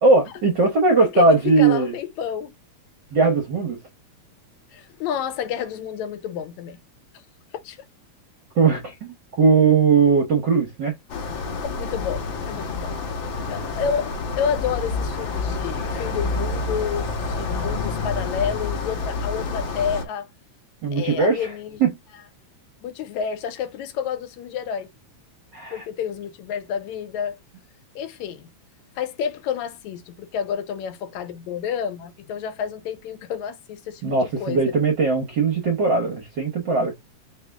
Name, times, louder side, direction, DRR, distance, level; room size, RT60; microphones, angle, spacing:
voice 1, 0.0-1.9 3.1-3.8 8.6-10.9 20.8-21.5 21.8-21.9 25.5-25.8 34.0-36.9, right 4 dB, 65° right, 1.0 m, -19 dB
voice 2, 1.0-2.5 4.7-6.8 7.6-7.8 11.8-13.0 13.5-20.3 20.9-21.8 22.8-24.9 25.7-27.4 28.0-28.5 29.0-34.7, left 8 dB, 80° left, 2.0 m, -29 dB
sound 1, 11.1-20.0, left 3 dB, 55° left, 1.4 m, -28 dB
4.2 x 2.8 x 3.4 m
omnidirectional pair, 3.3 m